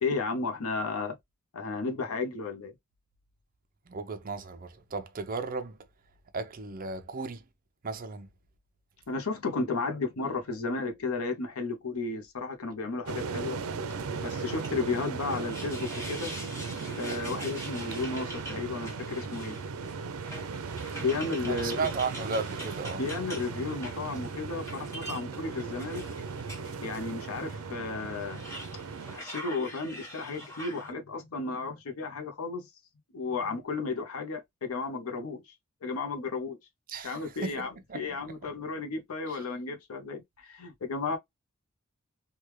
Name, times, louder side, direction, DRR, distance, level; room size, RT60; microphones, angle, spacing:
voice 1, 0.0-1.2 1.5-2.7 9.1-13.6 14.2-16.3 16.9-19.6 20.9-21.8 23.0-26.0 26.8-28.4 29.1-32.6 33.1-35.5 35.8-36.6 37.0-41.2, left 3 dB, 85° left, 0.7 m, -33 dB
voice 2, 3.9-5.8 6.3-7.4 7.8-8.3 21.5-23.0 36.9-38.0 39.3-39.4, right 4 dB, 40° right, 0.5 m, -35 dB
sound 1, 13.1-29.2, right 5 dB, 85° right, 0.5 m, -37 dB
sound 2, 14.1-27.2 27.6-27.7 28.1-30.9, equal, 15° left, 1.0 m, -45 dB
3.3 x 2.2 x 3.0 m
head